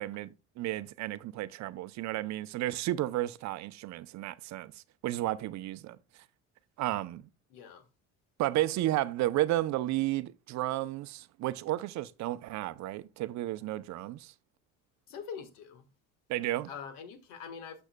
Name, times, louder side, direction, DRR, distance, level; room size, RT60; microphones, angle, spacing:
voice 1, 0.0-4.7 5.0-6.0 6.8-7.3 8.4-14.3 16.3-16.7, right 15 dB, 60° right, 0.6 m, -32 dB
voice 2, 7.5-7.9 15.1-15.9 16.7-17.9, left 6 dB, 80° left, 1.5 m, -44 dB
12.0 x 6.2 x 2.2 m
supercardioid pair, 100°, 32 cm